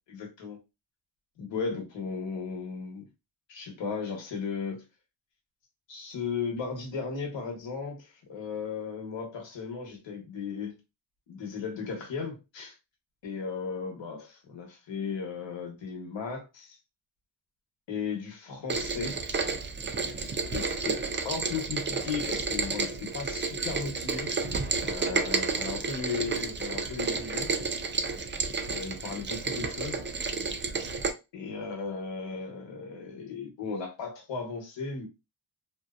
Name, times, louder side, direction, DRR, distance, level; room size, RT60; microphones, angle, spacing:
voice 1, 0.1-0.6 1.4-3.0 3.5-4.8 5.9-10.8 11.3-12.7 13.2-16.8 17.9-19.3 20.5-21.0 21.2-24.3 24.8-27.5 28.7-30.0 31.3-35.1, left 5 dB, 90° left, 1.1 m, -36 dB
Rain, 18.7-31.1, right 4 dB, 30° right, 0.4 m, -31 dB
2.7 x 2.1 x 2.4 m
wide cardioid pair, 95°, 43 cm